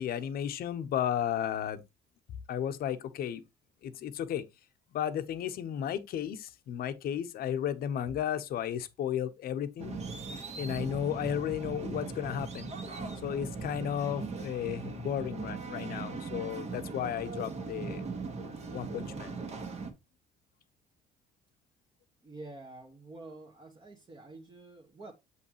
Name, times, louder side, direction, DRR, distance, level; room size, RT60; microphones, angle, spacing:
voice 1, 0.0-1.8 2.5-3.4 3.8-4.4 4.9-10.0 10.6-12.7 13.2-18.0 18.4-19.4, left 10 dB, 65° left, 1.0 m, -34 dB
sound 1, 9.8-19.9, right 4 dB, 40° right, 1.7 m, -39 dB
voice 2, 22.2-25.1, right 2 dB, 25° right, 1.3 m, -48 dB
7.7 x 5.6 x 3.0 m
cardioid pair, 110°, 17 cm